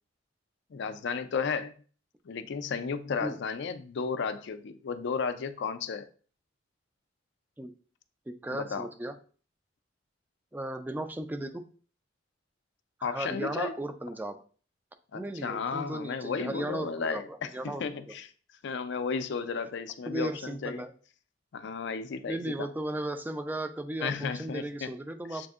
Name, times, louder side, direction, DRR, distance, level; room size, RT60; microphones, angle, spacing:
voice 1, 0.7-1.7 2.2-6.1 8.5-8.9 13.0-13.7 15.1-18.3 18.6-20.8 21.5-22.7 24.0-24.9 25.3-25.5, left 5 dB, 65° left, 0.4 m, -34 dB
voice 2, 8.3-9.1 10.5-11.6 13.0-14.4 15.1-18.1 20.1-20.9 22.3-25.5, right 1 dB, 10° right, 0.4 m, -36 dB
7.4 x 2.6 x 2.4 m
head